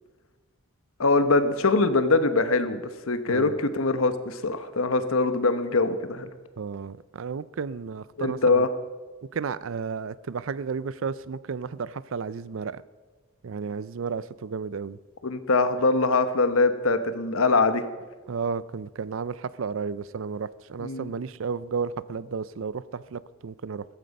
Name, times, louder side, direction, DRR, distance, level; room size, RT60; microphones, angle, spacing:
voice 1, 1.0-6.3 8.2-8.7 15.2-17.8 20.8-21.1, left 3 dB, 75° left, 10 dB, 1.0 m, -23 dB
voice 2, 6.6-8.7 9.3-12.8 13.4-15.0 18.3-23.9, right 5 dB, 65° right, 18 dB, 0.4 m, -33 dB
15.0 x 14.5 x 5.3 m, 1.4 s
head